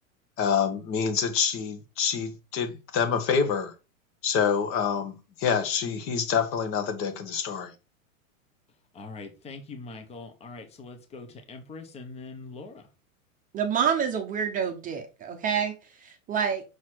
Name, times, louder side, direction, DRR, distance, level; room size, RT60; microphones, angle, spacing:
voice 1, 0.4-3.7 4.2-5.1 5.4-7.7, left 6 dB, 30° left, 1.4 m, -26 dB
voice 2, 8.9-12.8, left 3 dB, 15° left, 1.1 m, -42 dB
voice 3, 13.5-16.6, right 7 dB, 20° right, 1.0 m, -28 dB
6.3 x 4.0 x 4.6 m
hypercardioid pair, 140°, 41 cm